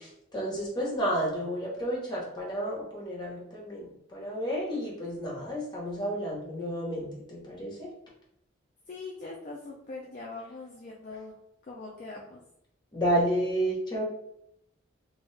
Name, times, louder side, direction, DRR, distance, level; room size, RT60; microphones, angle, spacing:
voice 1, 0.0-7.9 12.9-14.0, right 1 dB, 20° left, -4 dB, 0.9 m, -31 dB
voice 2, 8.9-11.3 11.7-12.4, left 3 dB, 40° left, -2 dB, 0.3 m, -42 dB
2.7 x 2.3 x 3.1 m, 0.77 s
head